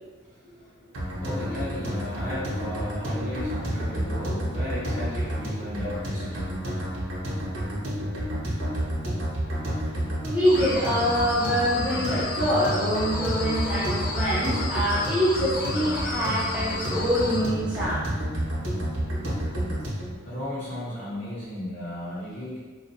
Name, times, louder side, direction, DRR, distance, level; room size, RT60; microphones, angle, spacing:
voice 1, 0.3-6.5 20.2-22.6, left 1 dB, 30° left, -13 dB, 1.3 m, -35 dB
sound 1, 0.9-20.1, equal, 80° right, 0.7 m, -30 dB
voice 2, 10.2-18.0, equal, 5° right, -10 dB, 0.7 m, -25 dB
sound 2, 10.4-17.4, left 3 dB, 45° left, 0.3 m, -33 dB
2.5 x 2.1 x 2.7 m, 1.4 s
head